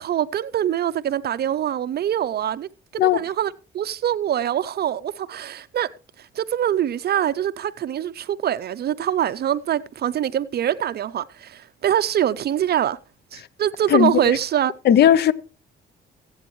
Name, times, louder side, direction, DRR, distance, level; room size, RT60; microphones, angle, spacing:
voice 1, 0.0-5.9 6.2-13.0 13.3-14.7, right 10 dB, 55° right, 0.5 m, -24 dB
voice 2, 13.9-14.2 14.8-15.3, left 10 dB, 55° left, 0.6 m, -16 dB
21.0 x 8.6 x 3.1 m
cardioid pair, 90°, 20 cm